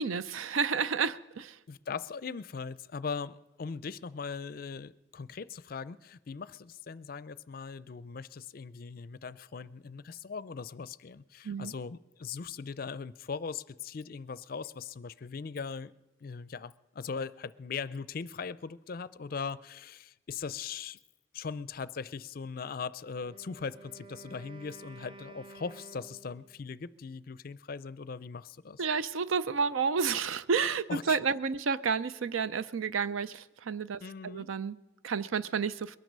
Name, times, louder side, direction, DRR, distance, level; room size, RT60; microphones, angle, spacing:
voice 1, 0.0-1.6 11.4-11.7 28.8-36.0, right 5 dB, 90° right, 0.5 m, -31 dB
voice 2, 1.7-15.9 16.2-21.0 21.3-28.8 30.9-31.2 34.0-34.5, left 5 dB, 50° left, 0.4 m, -40 dB
Wind instrument woodwind instrument, 23.1-26.6, right 3 dB, 25° right, 0.6 m, -51 dB
21.5 x 9.4 x 6.6 m
head